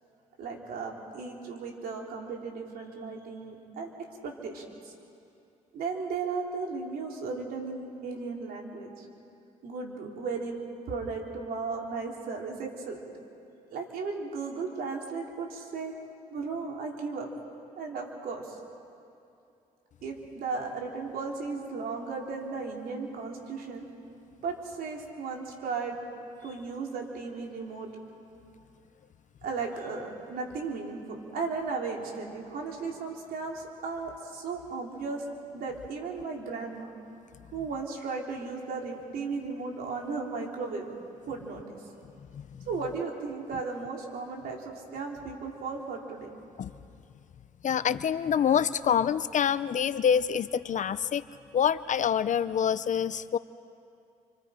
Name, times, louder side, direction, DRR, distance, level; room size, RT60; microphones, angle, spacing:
voice 1, 0.4-3.9 4.2-4.9 5.7-9.1 9.6-10.6 10.9-13.1 13.7-15.9 16.3-17.3 17.8-18.6 20.0-23.9 24.4-26.0 26.4-27.9 29.4-35.2 35.5-36.9 37.5-40.9 41.3-41.8 42.7-46.3, right 4 dB, 80° right, 0 dB, 3.4 m, -35 dB
voice 2, 47.6-51.2 51.5-53.4, left 8 dB, 55° left, 15 dB, 0.6 m, -26 dB
29.5 x 26.0 x 5.1 m, 2.6 s
cardioid pair, 70°, 15 cm